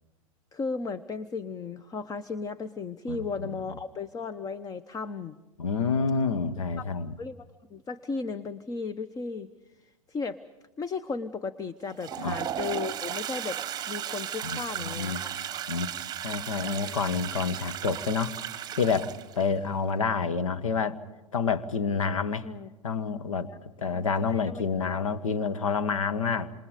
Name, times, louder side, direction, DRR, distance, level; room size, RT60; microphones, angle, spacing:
voice 1, 0.5-5.4 6.8-9.5 9.8-10.4 10.8-13.6 13.9-15.3 16.9-17.0 22.4-22.7 23.4-23.6 23.9-25.1, left 4 dB, 20° left, 14 dB, 0.9 m, -35 dB
voice 2, 3.1-3.6 5.6-7.1 12.2-12.4 14.4-15.2 15.7-15.9 16.2-18.3 18.7-21.0 21.3-22.5 22.8-23.5 23.8-26.5, left 5 dB, 75° left, 10 dB, 1.6 m, -28 dB
Toilet flush, 11.8-19.5, right 10 dB, 25° right, 1.3 m, -35 dB
27.5 x 27.0 x 5.1 m, 1.1 s
figure-of-eight pair, 95°, 17 cm